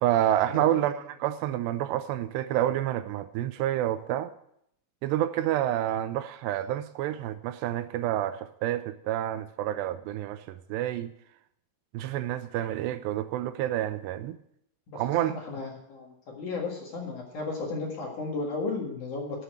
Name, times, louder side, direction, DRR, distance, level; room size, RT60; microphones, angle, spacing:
voice 1, 0.0-4.3 5.0-11.1 11.9-14.4 15.0-15.3, right 12 dB, 85° right, 11 dB, 2.5 m, -28 dB
voice 2, 14.9-19.4, left 3 dB, 55° left, 0 dB, 2.7 m, -34 dB
11.5 x 7.2 x 7.9 m, 0.73 s
omnidirectional pair, 5.3 m